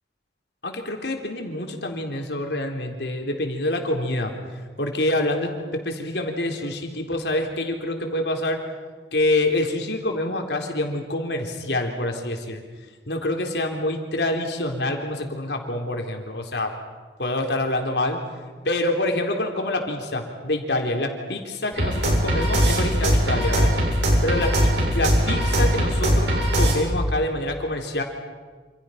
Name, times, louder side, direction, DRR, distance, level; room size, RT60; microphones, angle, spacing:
voice 1, 0.6-4.3 4.8-8.6 9.1-12.6 13.1-16.7 17.2-18.2 18.6-23.7 24.2-28.0, left 1 dB, 70° left, 2 dB, 3.9 m, -26 dB
sound 1, 21.7-26.7, equal, 85° right, 7.6 m, -20 dB
28.0 x 28.0 x 5.9 m, 1.5 s
head